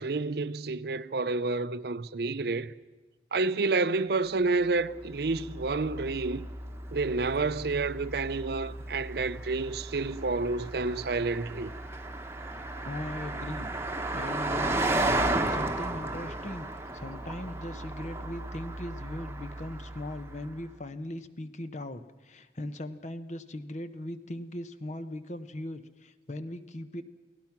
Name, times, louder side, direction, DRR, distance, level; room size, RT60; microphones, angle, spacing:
voice 1, 0.0-2.7 3.3-6.5 6.9-11.7, right 3 dB, 60° right, 0.7 m, -29 dB
Car passing by, 4.8-20.5, right 2 dB, 15° right, 1.1 m, -34 dB
voice 2, 12.9-13.7 14.1-15.2 15.5-27.0, left 1 dB, 40° left, 1.0 m, -39 dB
28.5 x 17.5 x 6.0 m
head